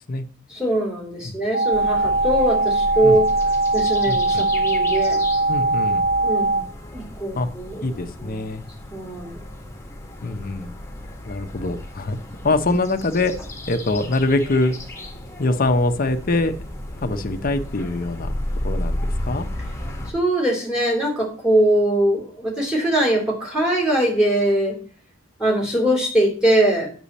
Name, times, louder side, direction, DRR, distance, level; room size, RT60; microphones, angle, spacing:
voice 1, 0.5-3.2 3.7-5.2 6.2-6.6 6.9-7.9 8.2-8.4 8.9-9.4 20.1-24.8 25.4-26.9, right 1 dB, 5° right, 0 dB, 2.7 m, -21 dB
sound 1, 1.5-6.6, right 2 dB, 85° left, 0.8 m, -20 dB
sound 2, 1.7-20.1, left 1 dB, 15° left, 1.5 m, -33 dB
voice 2, 4.1-4.5 5.5-6.1 7.3-7.5 7.8-8.6 10.2-10.7 11.3-12.2 12.4-13.3 13.7-14.7 15.4-16.5 17.0-18.3 18.6-19.0 19.2-19.5, left 2 dB, 45° left, 7 dB, 0.7 m, -23 dB
8.6 x 6.2 x 4.1 m, 0.43 s
head